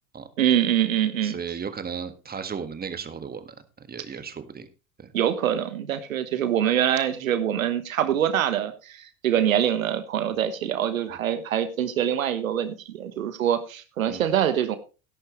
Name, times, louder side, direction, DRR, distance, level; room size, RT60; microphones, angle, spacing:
voice 1, 0.4-1.3 5.1-14.8, right 10 dB, 85° right, 11 dB, 1.3 m, -24 dB
voice 2, 1.2-4.7 5.0-5.1 14.1-14.2, right 6 dB, 25° right, 10 dB, 1.7 m, -35 dB
13.0 x 11.0 x 3.2 m, 0.32 s
hypercardioid pair, 85°, 39 cm